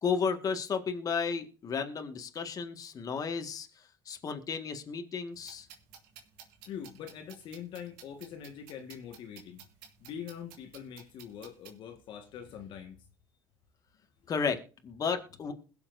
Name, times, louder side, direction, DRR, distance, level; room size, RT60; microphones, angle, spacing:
voice 1, 0.0-3.7 4.1-5.7 14.3-15.5, left 5 dB, 40° left, 1.8 m, -33 dB
sound 1, 5.3-11.8, right 8 dB, 80° right, 2.6 m, -54 dB
voice 2, 6.6-9.6 10.0-12.9, left 8 dB, 60° left, 1.7 m, -43 dB
21.0 x 7.1 x 2.7 m
supercardioid pair, 85°, 9 cm